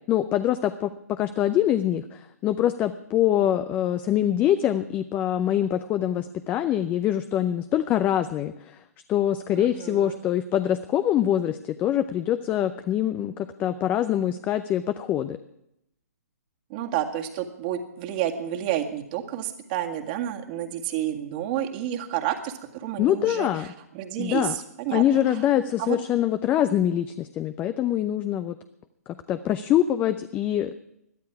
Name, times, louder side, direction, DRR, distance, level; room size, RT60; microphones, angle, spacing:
voice 1, 0.1-8.8 9.1-15.4 23.0-23.7 24.2-24.6 24.9-28.5 29.1-30.7, left 11 dB, 20° left, 11 dB, 0.6 m, -24 dB
voice 2, 9.5-10.2 16.7-25.4 25.8-26.0, right 11 dB, 35° right, 4 dB, 2.0 m, -30 dB
21.0 x 12.5 x 4.8 m, 0.82 s
figure-of-eight pair, 135°, 9 cm